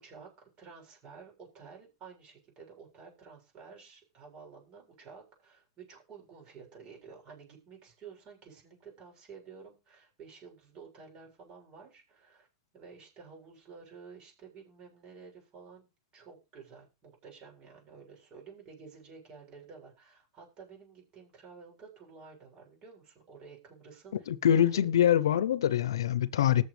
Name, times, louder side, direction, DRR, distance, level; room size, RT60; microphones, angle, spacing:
voice 1, 0.0-12.5 12.7-15.9 16.1-24.9, right 5 dB, 40° right, 7.4 m, -52 dB
voice 2, 24.3-26.6, left 10 dB, 90° left, 0.8 m, -24 dB
20.0 x 7.0 x 3.4 m
hypercardioid pair, 120°, 2 cm